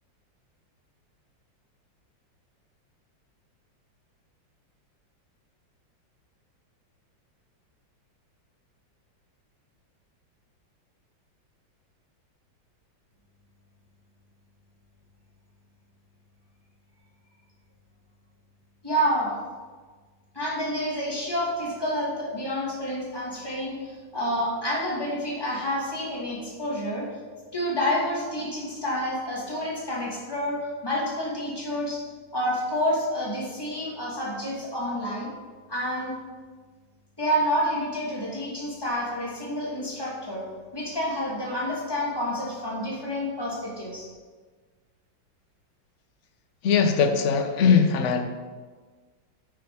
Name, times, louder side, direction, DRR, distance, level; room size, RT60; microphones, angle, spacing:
voice 1, 18.8-19.3 20.3-27.1 27.5-32.0 32.3-35.3 35.7-36.1 37.2-40.5 40.7-44.1, equal, 10° left, -5 dB, 2.2 m, -29 dB
voice 2, 46.6-48.3, left 6 dB, 55° left, 6 dB, 0.9 m, -20 dB
9.3 x 6.3 x 4.8 m, 1.4 s
omnidirectional pair, 2.0 m